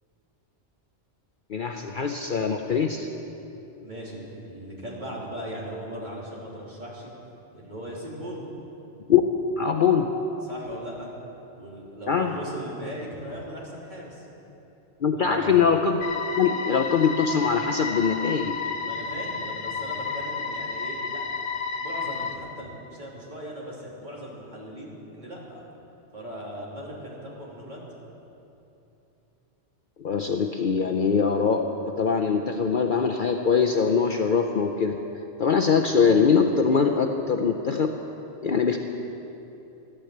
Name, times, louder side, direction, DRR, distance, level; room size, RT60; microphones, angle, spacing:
voice 1, 1.5-3.1 9.1-9.2 9.6-10.1 12.1-12.3 15.0-16.0 16.4-18.5 30.0-35.0 35.4-37.9 38.4-38.8, left 6 dB, 50° left, 4 dB, 0.8 m, -22 dB
voice 2, 3.8-7.1 7.5-8.5 10.4-11.1 11.5-14.3 15.1-15.6 18.7-21.2 21.8-25.6 26.1-27.9, equal, 40° right, -5 dB, 3.5 m, -38 dB
sound 1, 16.0-22.4, left 5 dB, 85° left, 1.2 m, -31 dB
13.5 x 12.0 x 7.9 m, 2.9 s
omnidirectional pair, 1.2 m